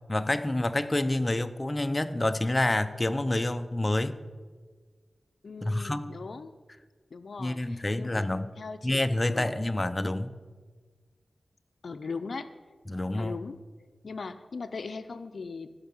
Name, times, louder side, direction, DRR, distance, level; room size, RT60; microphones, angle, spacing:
voice 1, 0.1-4.2 5.6-6.1 7.4-8.5 8.8-10.3 12.9-13.4, left 1 dB, 25° left, 10 dB, 0.6 m, -28 dB
voice 2, 5.4-6.5 7.1-8.3 8.6-9.6 11.8-12.5 13.1-13.6 14.0-15.7, left 4 dB, 70° left, 11 dB, 0.5 m, -39 dB
16.0 x 5.6 x 7.1 m, 1.5 s
wide cardioid pair, 65°, 0 cm